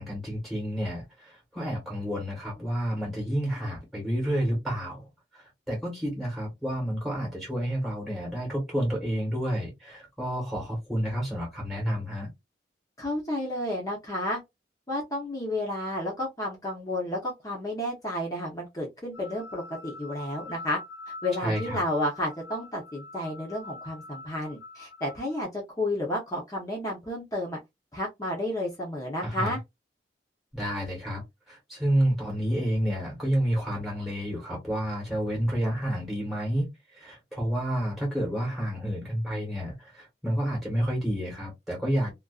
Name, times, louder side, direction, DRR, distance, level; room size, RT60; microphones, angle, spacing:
voice 1, 0.0-5.1 5.3-12.3 21.4-21.8 29.2-29.6 30.5-31.2 31.5-36.7 36.9-42.1, equal, ahead, 1.1 m, -30 dB
voice 2, 13.0-14.4 14.9-20.8 21.2-27.6 27.9-29.6, left 1 dB, 20° left, 0.7 m, -31 dB
sound 1, 19.1-25.4, left 3 dB, 80° left, 0.4 m, -44 dB
2.4 x 2.2 x 2.3 m
head